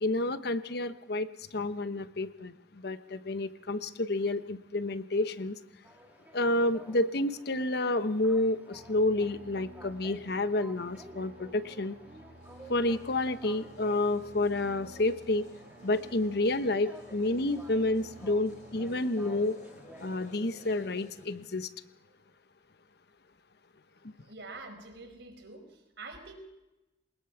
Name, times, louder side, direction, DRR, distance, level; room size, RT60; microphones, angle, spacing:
voice 1, 0.0-5.5 6.3-12.0 12.7-15.5 15.8-19.5 20.0-21.7, left 2 dB, 60° left, 11 dB, 1.0 m, -29 dB
sound 1, 5.8-20.4, right 1 dB, 10° right, 2.2 m, -54 dB
sound 2, 8.7-18.8, right 1 dB, 55° right, 2.6 m, -53 dB
sound 3, 12.3-21.5, left 1 dB, 45° left, 5.7 m, -56 dB
voice 2, 24.2-26.3, right 3 dB, 75° right, 4 dB, 4.8 m, -46 dB
21.5 x 20.5 x 5.9 m, 0.99 s
head